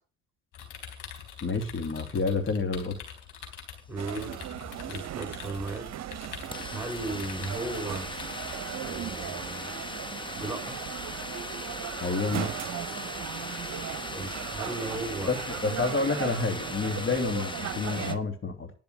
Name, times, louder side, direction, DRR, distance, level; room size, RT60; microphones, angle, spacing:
sound 1, 0.5-8.6, left 8 dB, 70° left, 4.1 m, -45 dB
voice 1, 1.4-3.0 12.0-12.5 15.2-18.7, left 4 dB, 35° left, 7 dB, 2.9 m, -29 dB
voice 2, 3.9-4.4 4.9-5.9 6.7-8.1 8.8-9.8 10.4-10.8 14.1-15.3, right 3 dB, 5° right, 5 dB, 5.2 m, -36 dB
sound 2, 4.0-18.2, right 11 dB, 50° right, 1.0 m, -38 dB
sound 3, 4.4-4.5 4.7-18.1, left 2 dB, 15° left, 1.3 m, -39 dB
11.0 x 6.9 x 7.0 m, 0.36 s
hypercardioid pair, 60°, 34 cm